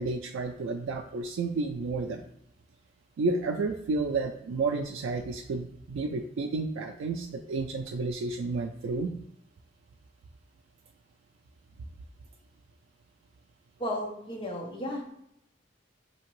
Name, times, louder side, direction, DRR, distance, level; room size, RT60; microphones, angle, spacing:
voice 1, 0.0-2.2 3.2-9.1, right 3 dB, 90° right, 3 dB, 0.3 m, -31 dB
voice 2, 13.8-15.1, left 1 dB, 25° left, -2 dB, 0.9 m, -34 dB
5.1 x 2.8 x 3.0 m, 0.76 s
head